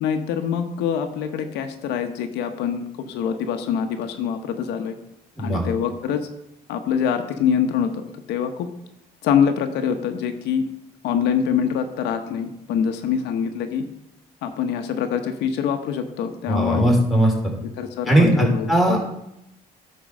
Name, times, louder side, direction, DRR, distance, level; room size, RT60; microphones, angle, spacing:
voice 1, 0.0-5.0 5.4-6.3 6.7-8.7 9.2-10.6 11.0-13.9 14.4-16.9 17.8-19.0, left 7 dB, 85° left, 7 dB, 0.9 m, -24 dB
voice 2, 16.5-17.3 18.1-19.0, right 1 dB, ahead, -1 dB, 3.0 m, -18 dB
10.0 x 4.6 x 6.5 m, 0.83 s
cardioid pair, 110°, 17 cm